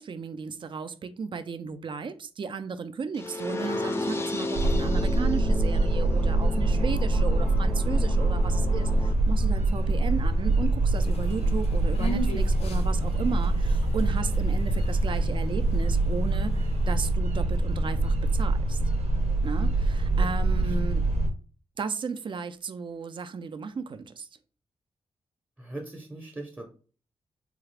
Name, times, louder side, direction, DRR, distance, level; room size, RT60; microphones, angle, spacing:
voice 1, 0.0-18.8 19.4-21.0 21.8-24.3, right 5 dB, 50° right, 12 dB, 0.4 m, -35 dB
sound 1, 3.2-9.1, left 1 dB, 20° left, 0.5 m, -33 dB
sound 2, 4.5-21.3, right 2 dB, 85° right, 0.8 m, -24 dB
sound 3, 11.0-17.1, equal, 70° left, 0.6 m, -40 dB
voice 2, 20.1-20.8 25.6-26.6, right 2 dB, 15° right, 1 dB, 0.7 m, -41 dB
3.7 x 2.4 x 3.3 m, 0.38 s
cardioid pair, 90°, 11 cm